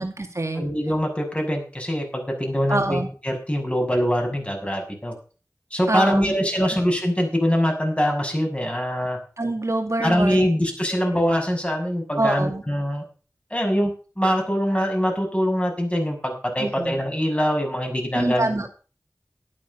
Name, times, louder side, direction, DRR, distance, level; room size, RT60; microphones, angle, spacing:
voice 1, 0.0-0.6 2.7-3.1 5.9-6.7 9.4-10.5 10.9-11.2 12.2-12.6 16.6-17.0 18.1-18.7, right 2 dB, 55° right, 5 dB, 2.0 m, -25 dB
voice 2, 0.5-5.1 5.7-9.2 10.0-13.0 13.5-18.5, equal, 20° left, 2 dB, 6.3 m, -23 dB
12.0 x 9.2 x 6.8 m, 0.37 s
wide cardioid pair, 45°, 6 cm